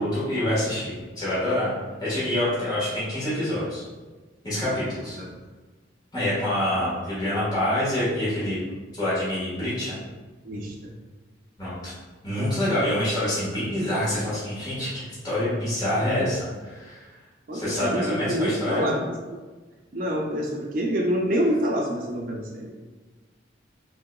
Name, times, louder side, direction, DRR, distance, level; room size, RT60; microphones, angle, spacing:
voice 1, 0.0-1.7 2.0-3.8 4.4-5.2 6.1-8.6 9.0-9.9 11.6-11.9 12.2-17.0 17.5-18.8, left 1 dB, 20° left, -12 dB, 1.4 m, -26 dB
voice 2, 10.4-10.9 17.5-19.4 19.9-22.7, equal, 45° right, -1 dB, 0.5 m, -27 dB
3.7 x 3.7 x 2.3 m, 1.3 s
head